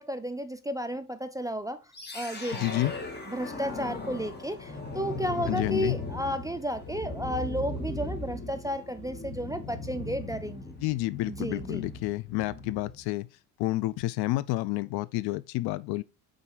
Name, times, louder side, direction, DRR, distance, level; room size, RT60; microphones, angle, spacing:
voice 1, 0.0-1.8 2.1-2.7 3.3-10.7 11.3-11.9, equal, 10° right, 0.4 m, -33 dB
sound 1, 1.9-13.1, left 2 dB, 20° left, 2.0 m, -38 dB
voice 2, 2.6-2.9 5.5-6.0 10.8-13.3 13.6-16.0, left 18 dB, 55° left, 0.5 m, -29 dB
5.4 x 4.0 x 4.8 m
hypercardioid pair, 65°, 46 cm